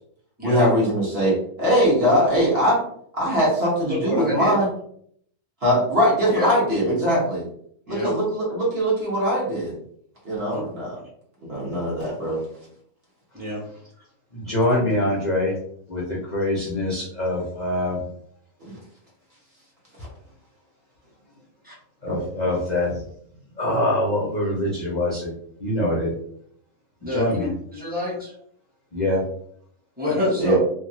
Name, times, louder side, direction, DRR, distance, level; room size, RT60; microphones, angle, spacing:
voice 1, 0.4-2.8 3.2-4.7 5.6-7.4 7.9-9.8 10.2-11.0 11.5-12.4 14.5-14.9 18.6-18.7 22.1-22.5 30.4-30.6, equal, 45° right, -6 dB, 1.2 m, -21 dB
voice 2, 3.9-4.5 6.3-6.5 7.9-8.1 10.5-10.6 13.3-13.6 14.7-14.8 21.6-21.7 27.0-27.4 27.7-28.3 30.0-30.6, left 1 dB, 5° right, -7 dB, 1.1 m, -27 dB
voice 3, 14.3-15.6 15.9-18.0 22.0-23.0 23.6-25.3 25.6-26.1 27.1-27.5 28.9-29.2, left 1 dB, 45° left, -5 dB, 0.5 m, -24 dB
2.8 x 2.5 x 2.6 m, 0.66 s
omnidirectional pair, 1.6 m